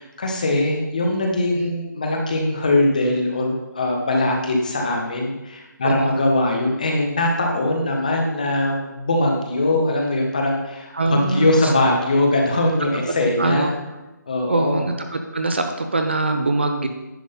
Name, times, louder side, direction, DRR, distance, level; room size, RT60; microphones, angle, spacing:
voice 1, 0.0-13.7 14.3-14.9, left 2 dB, 25° left, 1 dB, 0.9 m, -21 dB
voice 2, 10.9-11.7 12.9-13.0 13.4-13.7 14.5-16.9, right 2 dB, 35° right, 5 dB, 0.5 m, -23 dB
10.0 x 3.8 x 5.5 m, 1.0 s
hypercardioid pair, 180°, 11 cm